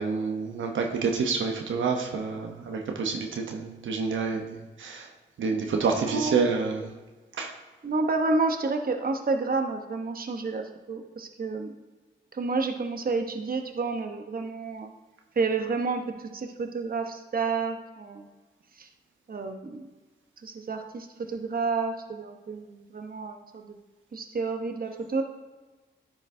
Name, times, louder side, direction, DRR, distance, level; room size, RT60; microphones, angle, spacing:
voice 1, 0.0-5.1 5.4-6.9 7.4-7.5, right 5 dB, 85° right, 2 dB, 0.8 m, -28 dB
voice 2, 6.0-6.5 7.8-11.7 12.3-14.9 15.3-18.3 18.7-18.9 19.3-19.9 20.4-23.8 24.1-25.2, right 3 dB, 50° right, 5 dB, 0.9 m, -30 dB
10.5 x 6.0 x 2.7 m, 1.2 s
cardioid pair, 55°, 20 cm